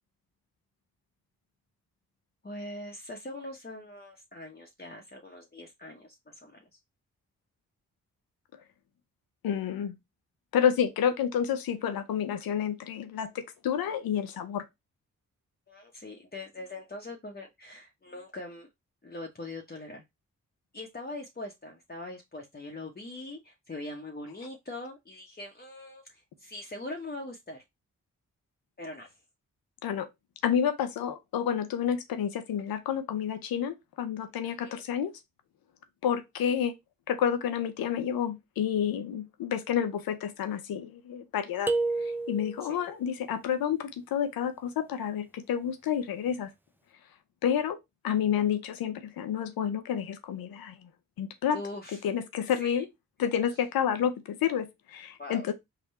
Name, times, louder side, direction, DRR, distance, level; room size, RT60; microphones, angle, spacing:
voice 1, 2.4-6.8 15.7-18.7 19.0-20.0 20.7-27.6 28.8-29.1 34.4-34.8 42.7-42.8 51.5-52.0 52.6-52.8 55.2-55.5, left 2 dB, 25° left, 0.9 m, -42 dB
voice 2, 9.4-9.9 10.5-14.6 29.8-30.1 30.4-35.1 36.0-36.7 37.1-41.7 42.3-46.5 47.4-47.8 48.0-50.9 51.2-51.6 52.0-52.9 53.2-55.5, left 8 dB, 80° left, 0.6 m, -29 dB
sound 1, 41.7-42.8, right 3 dB, 5° right, 0.5 m, -29 dB
3.7 x 2.2 x 4.0 m
supercardioid pair, 40°, 35 cm